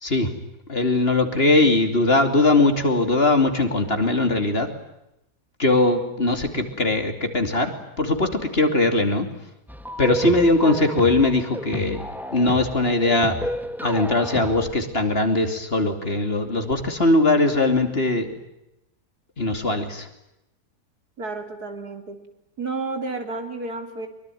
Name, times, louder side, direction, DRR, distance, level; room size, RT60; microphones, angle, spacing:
voice 1, 0.7-4.7 5.6-9.3 10.0-12.0 12.3-13.4 13.8-18.3 19.4-20.1, left 2 dB, 40° left, 7 dB, 3.2 m, -20 dB
sound 1, 9.7-14.7, equal, ahead, 1.5 m, -32 dB
voice 2, 21.2-22.2 22.6-24.1, right 3 dB, 75° right, 6 dB, 3.9 m, -31 dB
24.0 x 24.0 x 9.3 m, 0.86 s
omnidirectional pair, 1.7 m